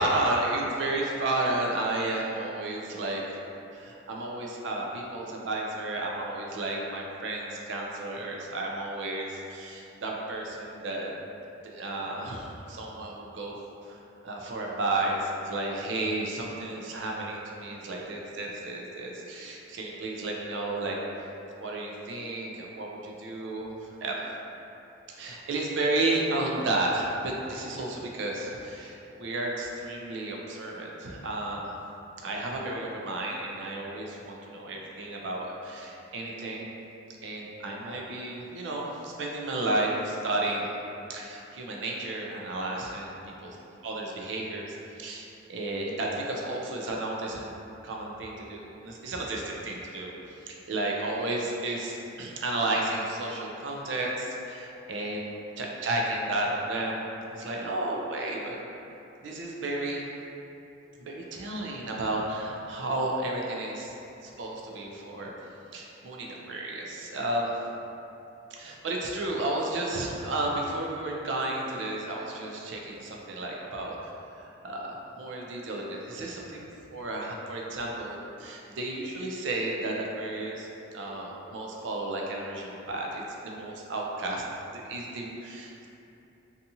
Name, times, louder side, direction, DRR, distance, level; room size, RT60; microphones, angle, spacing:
voice 1, 0.0-3.4 3.7-11.1 11.6-13.6 13.8-21.0 21.6-24.2 25.2-31.7 32.2-36.7 37.2-40.8 41.1-43.6 43.8-47.6 47.8-50.1 50.5-57.0 57.3-58.6 59.2-60.1 61.0-63.9 64.2-65.3 65.7-67.5 68.5-76.6 76.9-84.4 84.7-85.9, right 2 dB, 70° right, -1 dB, 0.4 m, -32 dB
2.7 x 2.3 x 2.6 m, 2.8 s
head